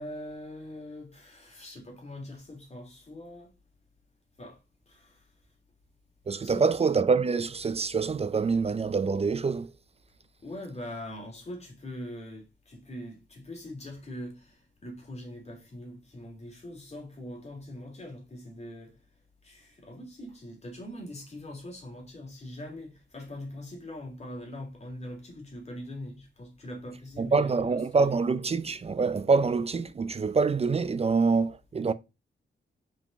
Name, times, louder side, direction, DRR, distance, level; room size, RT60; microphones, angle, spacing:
voice 1, 0.0-3.5 4.4-4.6 4.9-5.2 6.4-6.7 10.4-18.9 19.4-27.8, left 1 dB, 35° left, 3.0 m, -42 dB
voice 2, 6.3-9.7 27.2-31.9, right 4 dB, 30° right, 0.5 m, -25 dB
5.4 x 5.4 x 5.2 m
wide cardioid pair, 135°, 19 cm